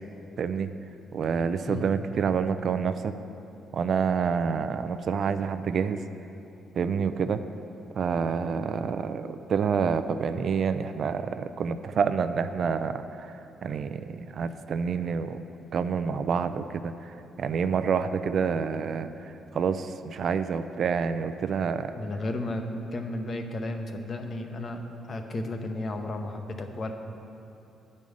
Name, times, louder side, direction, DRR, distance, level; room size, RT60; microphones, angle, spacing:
voice 1, 0.4-0.7 1.1-3.1 3.7-6.0 6.8-7.4 8.0-15.4 15.7-21.9, right 6 dB, 60° right, 10 dB, 0.4 m, -28 dB
voice 2, 22.0-22.7 22.9-26.9, left 2 dB, 40° left, 5 dB, 0.8 m, -33 dB
9.6 x 5.4 x 6.3 m, 2.8 s
cardioid pair, 90°, 0 cm